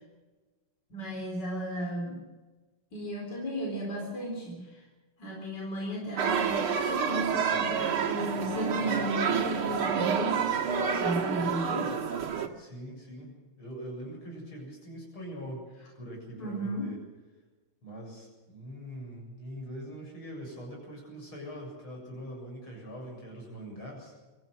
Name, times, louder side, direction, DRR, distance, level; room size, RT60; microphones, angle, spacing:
voice 1, 0.9-2.2 2.9-4.8 5.2-12.0 16.4-16.9, right 1 dB, 50° left, -1 dB, 5.0 m, -34 dB
sound 1, 6.2-12.5, right 7 dB, 85° right, 2.7 m, -29 dB
voice 2, 12.5-15.6 15.9-17.0 17.8-24.1, equal, 75° left, 0 dB, 8.3 m, -43 dB
23.5 x 15.0 x 7.8 m, 1.2 s
omnidirectional pair, 2.3 m